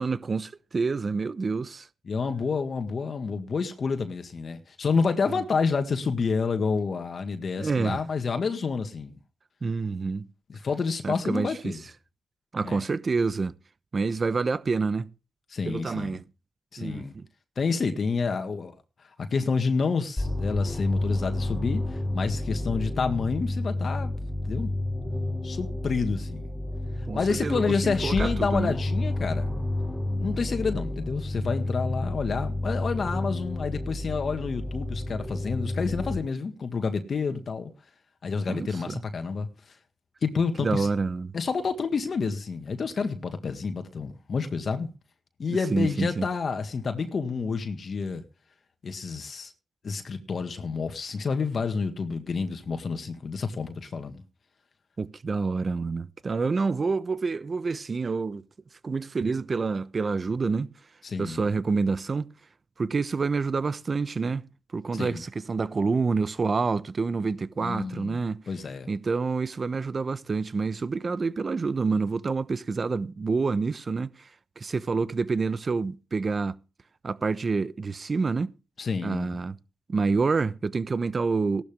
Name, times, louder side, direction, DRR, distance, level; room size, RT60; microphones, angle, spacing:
voice 1, 0.0-1.9 7.6-8.0 9.6-10.3 11.0-11.7 12.5-13.6 13.9-15.1 15.6-16.2 16.8-17.3 27.1-28.8 31.4-31.6 38.5-39.0 40.6-41.3 45.5-46.2 55.0-58.4 58.8-60.7 61.2-62.3 62.8-68.4 68.9-74.3 74.6-76.6 77.0-78.5 79.0-79.6 79.9-81.6, right 4 dB, 40° right, 0.9 m, -28 dB
voice 2, 2.1-9.2 10.5-11.8 12.6-12.8 15.5-16.2 16.7-17.1 17.6-18.7 19.3-24.1 24.4-24.7 25.4-26.4 27.1-29.5 30.2-37.7 38.2-39.7 40.2-40.9 41.3-44.9 45.4-48.2 48.8-49.5 49.8-54.2 61.0-61.5 64.9-65.2 67.6-68.2 68.5-68.9 78.8-79.4, left 5 dB, 50° left, 1.9 m, -29 dB
sound 1, 20.2-36.2, left 1 dB, 10° left, 3.6 m, -30 dB
16.0 x 12.0 x 3.6 m
cardioid pair, 75°, 0 cm